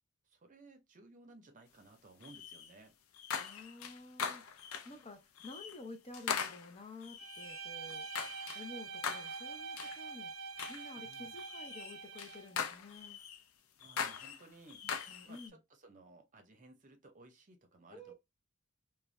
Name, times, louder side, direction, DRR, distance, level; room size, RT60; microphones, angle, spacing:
voice 1, 0.2-2.9 11.0-11.4 13.8-14.8 15.3-18.1, right 2 dB, 40° right, 0.6 m, -58 dB
sound 1, 2.2-2.7 3.1-5.0 5.4-5.8 6.1-8.7 9.0-9.4 9.8-10.0 10.6-10.9 11.4-13.4 13.8-15.5, left 6 dB, 80° left, 0.4 m, -41 dB
voice 2, 3.4-8.1 8.5-10.3 10.7-13.2 14.8-15.6 17.9-18.1, left 2 dB, 30° left, 0.6 m, -51 dB
Bowed string instrument, 7.2-12.6, right 5 dB, 80° right, 0.6 m, -45 dB
2.5 x 2.2 x 3.1 m
head